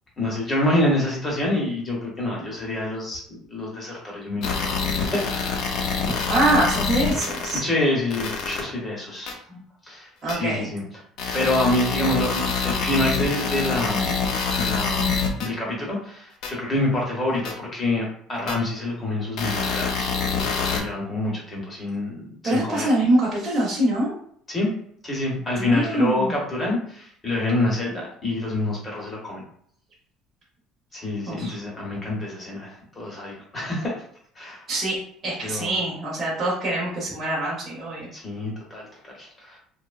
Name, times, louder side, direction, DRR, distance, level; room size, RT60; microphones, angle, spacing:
voice 1, 0.2-3.2 3.5-5.2 5.7-5.8 7.6-10.8 11.3-14.1 14.6-15.1 15.4-20.1 20.7-22.9 24.5-24.7 25.0-29.4 30.9-34.0 34.4-34.6 35.4-35.8 38.1-39.6, left 1 dB, 20° left, -3 dB, 0.8 m, -27 dB
sound 1, 4.4-7.6 8.1-8.6 9.3-9.4 10.3-10.4 11.2-15.5 16.4-16.5 17.4-17.5 18.5-18.6 19.4-20.8, left 5 dB, 60° left, 0.5 m, -26 dB
voice 2, 6.3-7.6 10.2-10.7 22.4-24.1 25.6-26.3 31.3-31.6 34.7-35.0 35.2-38.1, right 1 dB, 25° right, -7 dB, 0.8 m, -24 dB
2.8 x 2.1 x 2.4 m, 0.63 s
cardioid pair, 160°, 0 cm